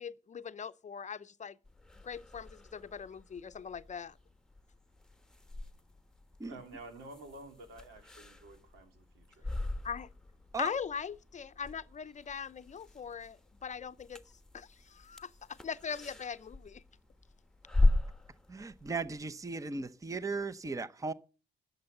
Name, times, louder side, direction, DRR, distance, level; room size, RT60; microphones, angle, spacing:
voice 1, 0.0-1.6 2.0-4.2 9.8-10.1 10.6-14.2 14.5-15.3 15.6-16.8, left 6 dB, 35° left, 0.7 m, -40 dB
sound 1, 1.6-19.2, left 2 dB, 5° left, 1.1 m, -38 dB
voice 2, 6.5-9.5, right 2 dB, 85° right, 3.2 m, -50 dB
voice 3, 18.5-21.1, right 4 dB, 15° right, 0.7 m, -37 dB
13.0 x 7.9 x 6.6 m
cardioid pair, 90°, 20 cm